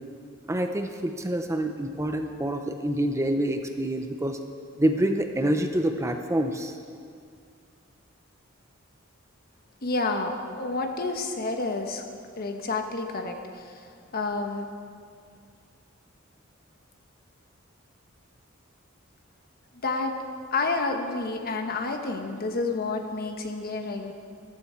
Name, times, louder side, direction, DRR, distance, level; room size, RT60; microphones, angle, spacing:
voice 1, 0.5-4.4 4.8-6.8, right 1 dB, 15° right, 5 dB, 0.6 m, -27 dB
voice 2, 9.8-12.0 12.4-14.7 19.8-20.2 20.5-24.1, left 3 dB, 50° left, 4 dB, 1.2 m, -29 dB
14.0 x 13.5 x 4.5 m, 2.2 s
head